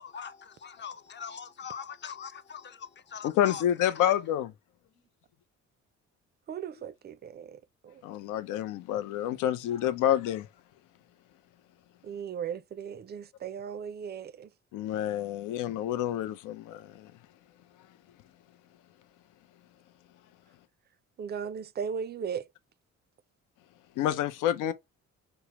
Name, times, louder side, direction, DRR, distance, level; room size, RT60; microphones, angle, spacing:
voice 1, 0.0-3.6 3.9-4.2, left 7 dB, 40° left, 0.5 m, -42 dB
voice 2, 3.2-4.5 8.0-10.5 14.7-17.1 24.0-24.7, left 11 dB, 90° left, 0.5 m, -28 dB
voice 3, 6.5-8.0 12.0-14.5 21.2-22.5, right 7 dB, 35° right, 0.4 m, -37 dB
4.5 x 2.0 x 2.9 m
cardioid pair, 90°, 30 cm